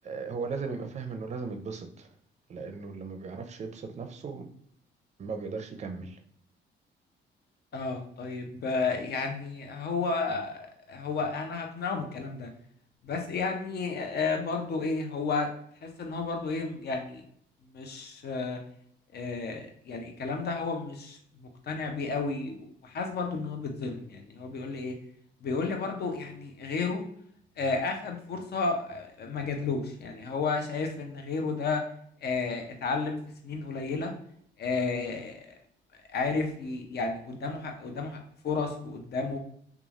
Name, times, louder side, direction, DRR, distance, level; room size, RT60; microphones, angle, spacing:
voice 1, 0.0-2.1 2.5-4.5 5.2-6.2, right 4 dB, 35° right, 6 dB, 0.5 m, -37 dB
voice 2, 7.7-12.5 13.0-15.5 15.8-17.2 17.7-18.6 19.1-25.0 25.4-27.0 27.6-31.8 32.2-33.2 33.4-34.1 34.6-35.4 36.1-38.2 38.4-39.4, left 4 dB, 55° left, 4 dB, 0.6 m, -32 dB
3.0 x 2.3 x 2.4 m, 0.66 s
cardioid pair, 90°, 20 cm